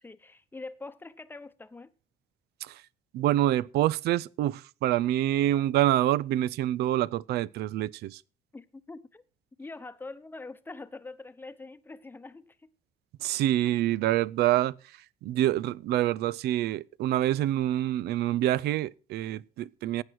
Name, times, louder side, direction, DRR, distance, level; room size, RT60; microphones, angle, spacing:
voice 1, 0.0-1.9 8.5-9.2 9.6-12.7, left 3 dB, 10° left, 0.9 m, -44 dB
voice 2, 3.1-8.2 13.2-14.8 15.2-20.0, right 13 dB, 75° right, 0.5 m, -26 dB
15.5 x 9.2 x 4.6 m
cardioid pair, 110°, 17 cm